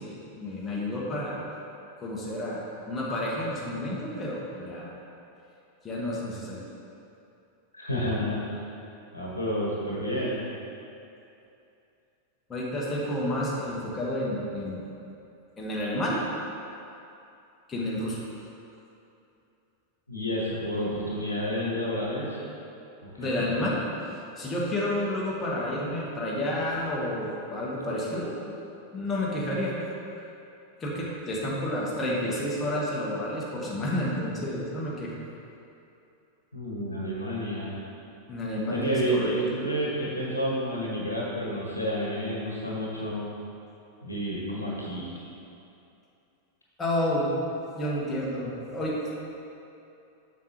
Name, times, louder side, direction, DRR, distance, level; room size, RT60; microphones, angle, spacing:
voice 1, 0.0-1.4 2.0-4.9 5.8-6.6 12.5-14.8 15.6-16.2 17.7-18.2 23.2-23.8 24.1-28.3 28.9-29.8 30.8-35.1 38.3-39.4 46.8-47.3 47.7-49.2, left 1 dB, 20° left, -5 dB, 1.3 m, -30 dB
voice 2, 7.7-8.4 9.1-10.4 20.1-22.4 23.0-23.5 36.5-37.8 38.7-43.2 44.0-45.1, equal, 85° left, -5 dB, 1.3 m, -30 dB
7.2 x 6.5 x 3.0 m, 2.7 s
figure-of-eight pair, 90°, 0 cm